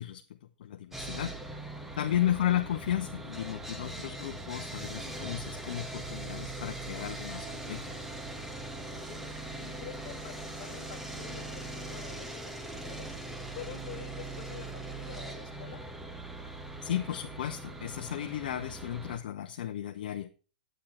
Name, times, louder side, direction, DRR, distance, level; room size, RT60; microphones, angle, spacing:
voice 1, 0.0-1.3 2.0-7.9 16.8-20.3, left 11 dB, 65° left, 5 dB, 0.9 m, -34 dB
Sawing, 0.9-19.2, right 2 dB, 5° right, 1.5 m, -41 dB
voice 2, 2.0-2.6 8.6-15.8, left 11 dB, 45° left, 3 dB, 2.2 m, -48 dB
9.9 x 9.2 x 4.4 m, 0.36 s
hypercardioid pair, 115°, 5 cm